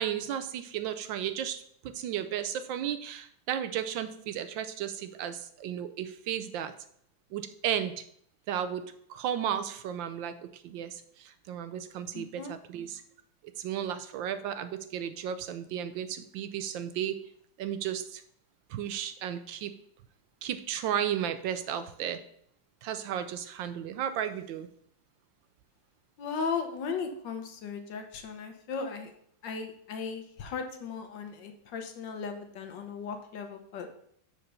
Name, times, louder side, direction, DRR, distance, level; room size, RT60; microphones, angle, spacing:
voice 1, 0.0-1.6 1.9-6.7 7.3-8.0 8.5-13.0 13.6-17.2 17.6-18.2 18.7-19.7 20.4-22.2 22.8-24.7, right 9 dB, 75° right, 11 dB, 1.2 m, -34 dB
voice 2, 12.1-12.6 26.2-29.1 29.4-33.9, left 5 dB, 65° left, 5 dB, 1.5 m, -36 dB
6.5 x 4.5 x 6.7 m, 0.67 s
omnidirectional pair, 2.2 m